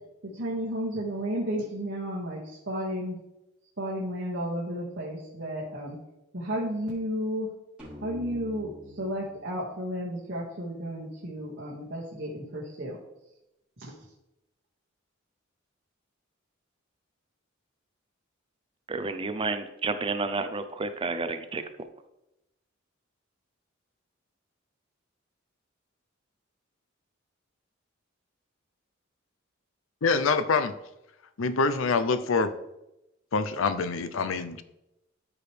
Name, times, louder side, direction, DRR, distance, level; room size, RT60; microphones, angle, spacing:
voice 1, 0.2-3.2 3.8-6.0 6.3-7.5 8.0-13.0 13.8-13.9, equal, 60° right, -6 dB, 1.9 m, -33 dB
sound 1, 7.8-11.3, equal, 5° right, 3.3 m, -48 dB
voice 2, 18.9-21.6, right 3 dB, 25° right, 9 dB, 0.5 m, -30 dB
voice 3, 30.0-30.7 31.4-32.6 33.3-34.6, left 4 dB, 80° left, 12 dB, 0.6 m, -25 dB
13.0 x 4.9 x 3.3 m, 0.90 s
head